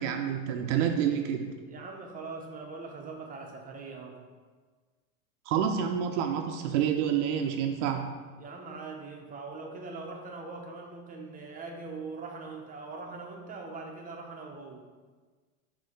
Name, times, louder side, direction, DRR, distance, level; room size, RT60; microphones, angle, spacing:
voice 1, 0.0-1.5 5.5-8.1, right 8 dB, 70° right, 4 dB, 0.6 m, -28 dB
voice 2, 1.7-4.2 8.4-14.8, right 3 dB, 20° right, 1 dB, 0.8 m, -41 dB
6.6 x 2.9 x 5.1 m, 1.4 s
supercardioid pair, 135°, 39 cm